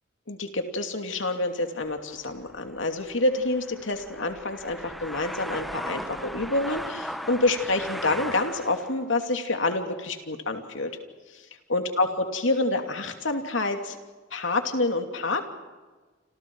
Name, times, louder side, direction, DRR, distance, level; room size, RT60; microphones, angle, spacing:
voice 1, 0.3-10.9 11.3-11.4 11.7-14.0 14.3-15.4, left 2 dB, 75° left, 5 dB, 2.8 m, -27 dB
sound 1, 1.8-9.0, equal, ahead, 1.0 m, -38 dB
28.5 x 27.5 x 4.8 m, 1.3 s
head